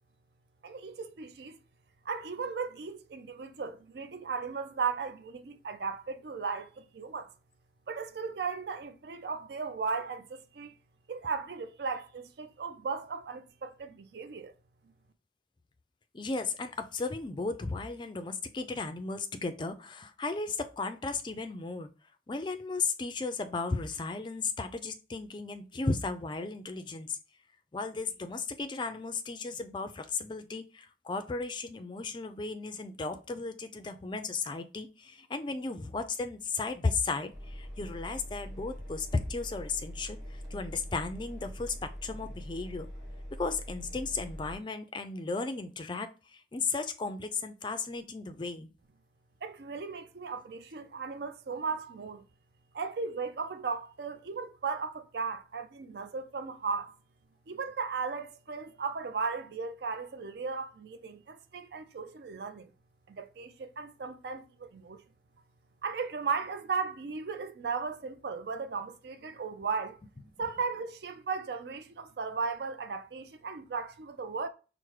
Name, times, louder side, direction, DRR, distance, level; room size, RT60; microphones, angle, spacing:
voice 1, 0.6-1.6 2.1-7.3 7.9-10.7 11.1-14.5 49.4-52.2 52.7-57.0 57.5-62.7 63.1-65.0 65.8-70.0 70.4-74.5, right 5 dB, 60° right, 0.4 m, -36 dB
voice 2, 16.1-21.9 22.3-27.2 27.7-42.9 43.4-48.7, left 4 dB, 25° left, 0.4 m, -35 dB
Engine, 37.3-44.6, equal, 20° right, 1.2 m, -43 dB
5.8 x 2.1 x 3.2 m
head